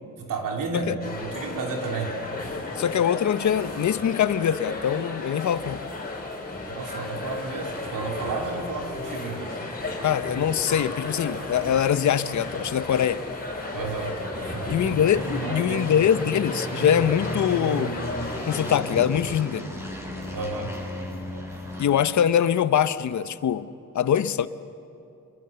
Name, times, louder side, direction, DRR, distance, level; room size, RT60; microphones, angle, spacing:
voice 1, 0.2-2.2 6.7-9.6 13.7-16.3 20.3-20.8, right 3 dB, 70° right, 1 dB, 3.0 m, -32 dB
sound 1, 1.0-18.8, left 2 dB, 25° left, 5.1 m, -34 dB
voice 2, 2.8-5.9 10.0-13.2 14.7-18.0 18.4-19.7 21.8-23.7 23.9-24.5, left 9 dB, 60° left, 13 dB, 0.8 m, -23 dB
sound 2, 6.5-21.8, equal, 10° right, 7.2 m, -37 dB
27.0 x 21.0 x 6.9 m, 2.6 s
cardioid pair, 110°, 33 cm